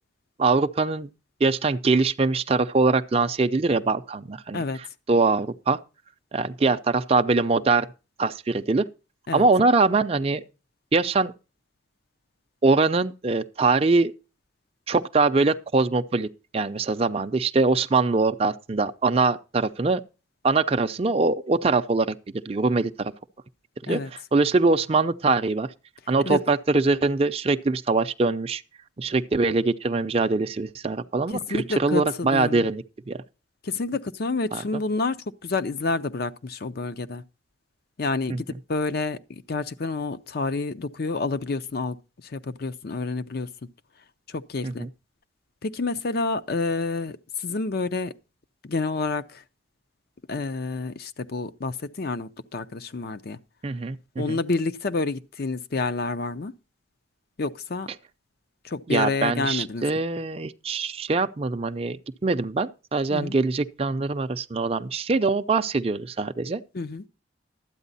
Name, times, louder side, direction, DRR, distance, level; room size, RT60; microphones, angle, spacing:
voice 1, 0.4-1.1 1.4-5.8 6.3-7.9 8.2-8.9 9.3-10.4 10.9-11.3 12.6-14.1 14.9-20.0 20.4-23.1 23.8-25.7 26.1-28.6 29.0-33.2 34.5-34.6 38.3-38.4 44.6-44.9 53.6-54.4 58.9-66.6, right 3 dB, 30° right, 0.5 m, -23 dB
voice 2, 31.3-32.7 33.6-35.2 35.4-37.2 38.0-42.0 42.2-43.5 44.3-44.9 45.6-48.1 48.6-49.4 50.3-53.4 54.2-56.5 57.4-57.9 58.6-59.8 63.1-63.3 66.7-67.0, left 3 dB, 55° left, 0.6 m, -29 dB
12.5 x 9.0 x 4.0 m
head